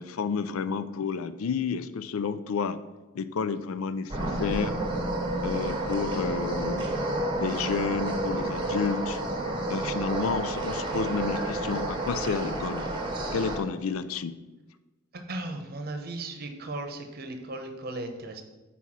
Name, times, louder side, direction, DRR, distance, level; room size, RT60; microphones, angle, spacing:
voice 1, 0.0-2.8 3.1-4.7 5.4-6.9 7.4-9.2 9.7-12.9 13.3-14.4, left 5 dB, 90° left, 13 dB, 0.4 m, -30 dB
sound 1, 4.1-13.6, right 1 dB, 25° right, 1.0 m, -30 dB
voice 2, 15.1-18.4, right 2 dB, 50° right, 5 dB, 0.8 m, -36 dB
5.8 x 4.1 x 6.1 m, 1.2 s
head